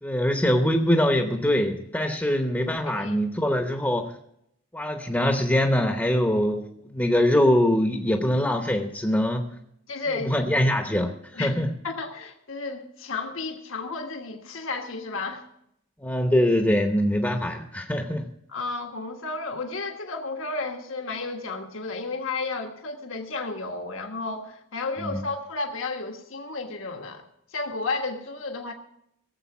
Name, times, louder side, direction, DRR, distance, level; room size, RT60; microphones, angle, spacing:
voice 1, 0.0-4.1 4.7-9.6 10.1-11.7 16.0-18.3 25.0-25.2, left 1 dB, 10° left, 4 dB, 0.8 m, -23 dB
voice 2, 2.9-3.2 9.9-10.3 11.3-11.6 11.8-15.5 18.5-27.2 27.5-28.7, left 3 dB, 75° left, 3 dB, 1.4 m, -32 dB
17.0 x 7.7 x 6.0 m, 0.75 s
head